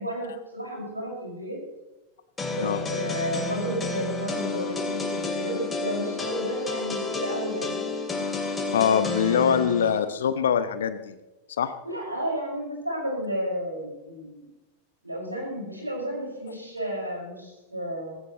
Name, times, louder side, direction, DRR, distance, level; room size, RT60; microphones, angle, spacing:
voice 1, 0.0-1.6 2.5-7.9 9.0-9.6 11.8-14.4 15.0-18.2, equal, 85° right, -2 dB, 5.6 m, -32 dB
sound 1, 2.4-10.0, left 3 dB, 15° left, 2.8 m, -30 dB
voice 2, 8.7-11.2 11.6-11.7, left 8 dB, 65° left, 12 dB, 1.1 m, -23 dB
18.0 x 16.5 x 3.1 m, 1.1 s
figure-of-eight pair, 90°, 0 cm